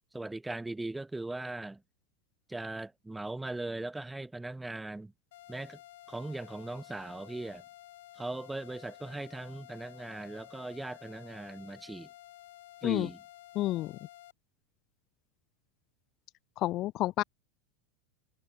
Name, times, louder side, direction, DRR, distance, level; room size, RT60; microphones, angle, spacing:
voice 1, 0.1-1.8 2.5-5.1 5.5-5.8 6.1-7.6 8.1-12.1 12.8-13.2, right 2 dB, 5° right, 0.7 m, -39 dB
sound 1, 5.3-14.3, left 15 dB, 75° left, 7.1 m, -53 dB
voice 2, 13.6-13.9 16.6-17.2, left 16 dB, 45° left, 0.3 m, -29 dB
hypercardioid pair, 115°, 0 cm